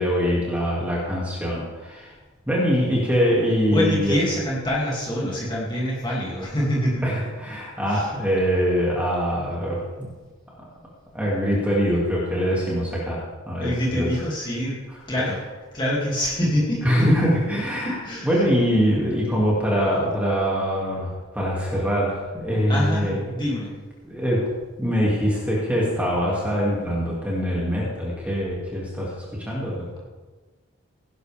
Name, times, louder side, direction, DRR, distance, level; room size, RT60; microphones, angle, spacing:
voice 1, 0.0-2.1 2.5-4.2 7.0-10.1 11.1-14.1 15.1-15.3 16.8-18.0 18.2-23.2 24.1-24.5 24.8-29.9, equal, 5° right, -5 dB, 2.5 m, -23 dB
voice 2, 3.7-7.0 7.9-8.1 13.6-14.8 15.1-15.4 15.7-16.8 17.8-18.4 22.7-23.7, left 1 dB, 20° left, -5 dB, 2.7 m, -25 dB
17.0 x 11.0 x 3.6 m, 1.3 s
head